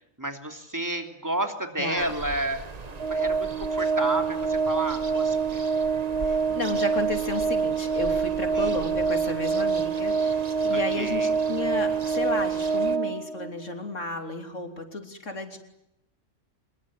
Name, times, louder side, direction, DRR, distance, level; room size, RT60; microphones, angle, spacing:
voice 1, 0.2-5.6 8.5-8.8 10.7-11.3, right 1 dB, 15° right, 5 dB, 3.0 m, -31 dB
voice 2, 1.8-2.1 6.2-15.6, left 2 dB, 75° left, 5 dB, 3.7 m, -33 dB
sound 1, 2.0-13.0, right 4 dB, 35° right, 1.1 m, -40 dB
Organ, 3.0-13.7, right 5 dB, 55° right, 2.3 m, -26 dB
25.5 x 22.0 x 10.0 m, 0.82 s
omnidirectional pair, 1.3 m